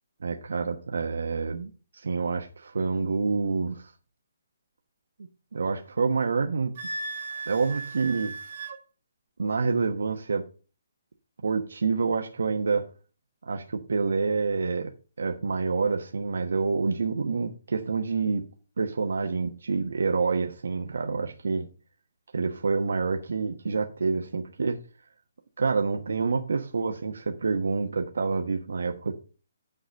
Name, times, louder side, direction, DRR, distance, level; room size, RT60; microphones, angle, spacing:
voice 1, 0.2-3.9 5.5-6.7 7.5-8.3 9.4-10.5 11.4-12.9 13.5-14.9 15.2-18.5 18.8-21.7 22.3-24.8 25.6-29.1, right 4 dB, 80° right, 1.1 m, -27 dB
Wind instrument woodwind instrument, 6.8-8.8, right 3 dB, 40° right, 1.3 m, -36 dB
9.2 x 5.0 x 6.4 m
hypercardioid pair, 175°, 0 cm